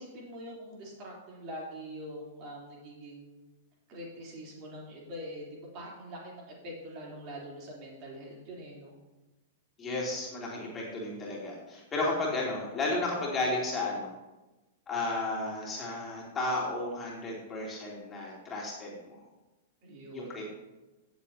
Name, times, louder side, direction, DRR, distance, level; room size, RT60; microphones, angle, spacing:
voice 1, 0.0-3.4 3.9-8.9 19.8-20.4, equal, 40° right, -3 dB, 3.6 m, -44 dB
voice 2, 9.8-14.1 14.9-19.2 20.1-20.4, left 2 dB, 20° left, -4 dB, 3.3 m, -33 dB
17.5 x 7.3 x 2.9 m, 1.1 s
figure-of-eight pair, 100°, 0 cm